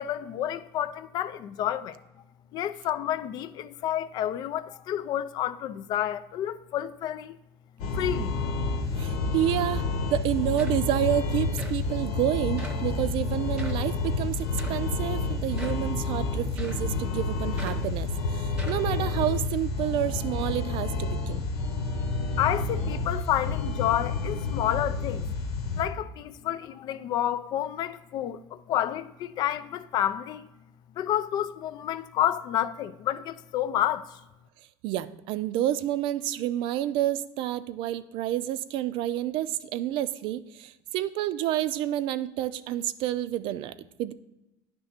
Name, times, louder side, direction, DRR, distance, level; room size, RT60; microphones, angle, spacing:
voice 1, 0.0-2.0 2.5-7.4 7.9-8.4 22.4-25.3 25.8-30.5 31.0-34.2, left 11 dB, 45° left, 0.3 m, -29 dB
sound 1, 7.8-25.8, left 3 dB, 85° left, 1.1 m, -29 dB
voice 2, 9.0-21.4 34.8-44.1, right 12 dB, 60° right, 0.4 m, -29 dB
sound 2, 10.2-10.3 10.6-11.1 11.6-11.8 12.6-12.9 13.6-13.9 14.6-14.9 15.6-15.9 16.6-16.9 17.6-17.9 18.5-18.9, right 2 dB, 10° right, 0.8 m, -43 dB
9.7 x 3.4 x 5.7 m
cardioid pair, 155°, 10 cm